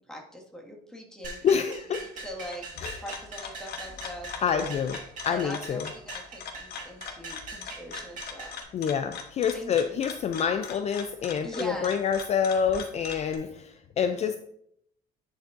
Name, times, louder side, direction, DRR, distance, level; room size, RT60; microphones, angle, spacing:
voice 1, 0.0-1.5 2.0-2.6 3.0-4.7 5.3-8.6 9.5-10.0 11.4-12.0, equal, 5° left, -2 dB, 1.8 m, -41 dB
sound 1, 1.2-8.6, right 3 dB, 50° right, 2.0 m, -42 dB
voice 2, 1.4-2.1 2.8-3.0 4.4-5.9 8.7-14.4, left 7 dB, 40° left, 9 dB, 0.4 m, -27 dB
sound 2, 2.3-13.4, left 6 dB, 70° left, 1.1 m, -41 dB
10.5 x 5.2 x 2.6 m, 0.72 s
cardioid pair, 110°, 17 cm